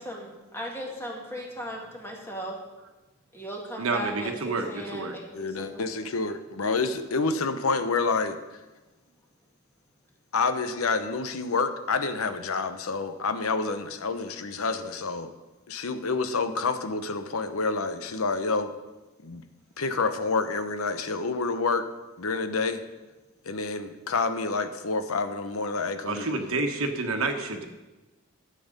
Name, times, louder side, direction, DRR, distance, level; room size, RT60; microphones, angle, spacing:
voice 1, 0.0-2.6 3.3-5.9, equal, 10° left, -1 dB, 1.9 m, -37 dB
voice 2, 3.8-5.1 26.1-27.7, right 3 dB, 75° right, 5 dB, 1.2 m, -29 dB
voice 3, 5.3-8.4 10.3-15.3 15.7-18.7 19.2-19.4 19.8-21.8 22.2-22.8 23.4-26.3, left 4 dB, 80° left, 10 dB, 0.8 m, -28 dB
12.5 x 7.7 x 5.3 m, 1.1 s
head